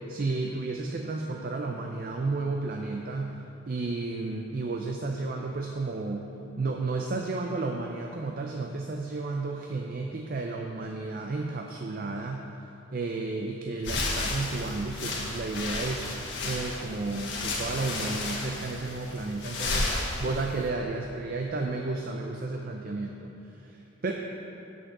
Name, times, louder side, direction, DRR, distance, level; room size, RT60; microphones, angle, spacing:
voice 1, 0.1-3.4 3.7-6.3 6.6-12.5 12.9-16.1 16.4-19.9 20.2-24.1, right 3 dB, 45° right, 2 dB, 0.5 m, -32 dB
sound 1, 13.8-20.7, left 2 dB, 60° left, 1.4 m, -33 dB
7.8 x 6.4 x 5.9 m, 2.9 s
head